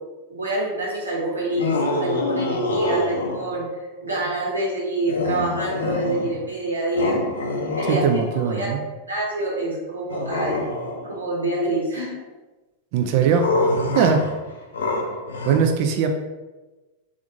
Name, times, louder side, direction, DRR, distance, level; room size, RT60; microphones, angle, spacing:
voice 1, 0.3-3.7 4.0-7.2 7.8-8.0 8.4-8.7 9.1-10.6 11.0-12.2, right 1 dB, 80° right, -4 dB, 1.4 m, -26 dB
sound 1, 1.5-3.6 5.1-6.5 6.9-8.6 10.1-11.2 13.3-15.6, left 2 dB, 70° left, 0.6 m, -26 dB
voice 2, 7.8-8.8 12.9-13.5 13.9-14.3 15.4-16.2, right 6 dB, 45° right, 5 dB, 0.4 m, -20 dB
3.6 x 3.5 x 3.8 m, 1.2 s
figure-of-eight pair, 90°, 0 cm